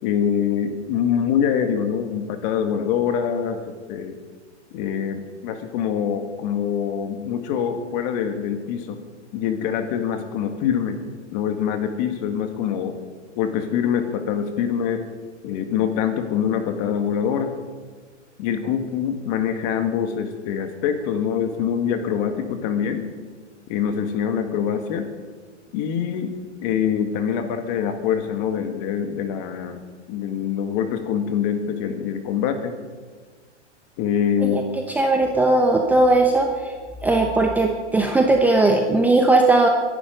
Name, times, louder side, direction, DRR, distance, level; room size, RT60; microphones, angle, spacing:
voice 1, 0.0-3.6 3.9-4.2 4.7-9.0 9.3-11.0 11.3-13.0 13.4-15.0 15.4-17.5 18.4-23.1 23.7-25.1 25.7-32.8 34.0-34.6, left 8 dB, 35° left, 7 dB, 1.9 m, -24 dB
voice 2, 35.0-36.5 37.0-39.7, right 2 dB, 5° right, 1 dB, 0.8 m, -18 dB
22.5 x 11.0 x 5.2 m, 1.5 s
hypercardioid pair, 145°, 36 cm